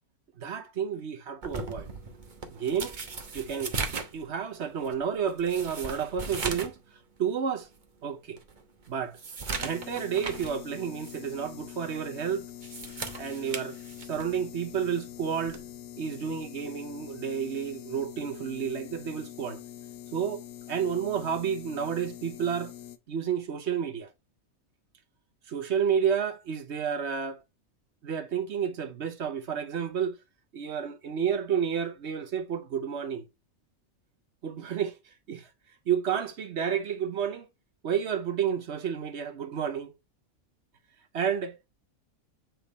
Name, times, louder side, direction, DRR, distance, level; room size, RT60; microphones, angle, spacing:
voice 1, 0.4-1.9 2.5-3.0 3.3-3.7 4.1-6.8 7.2-7.7 8.0-8.4 8.9-9.2 9.6-12.5 13.2-15.6 16.0-19.6 20.1-20.4 20.7-22.7 23.1-24.1 25.5-27.4 28.0-30.2 30.5-33.3 34.4-35.0 35.3-35.5 35.9-37.5 37.8-39.9 41.1-41.7, right 7 dB, 60° right, 0.9 m, -30 dB
sound 1, 1.4-6.8 7.2-7.3 7.8-7.9 8.4-10.6 11.0-11.2 12.4-14.4 15.5-15.7, right 4 dB, 40° right, 1.0 m, -37 dB
sound 2, 9.6-23.0, left 12 dB, 75° left, 1.1 m, -44 dB
7.4 x 3.4 x 3.9 m
omnidirectional pair, 1.5 m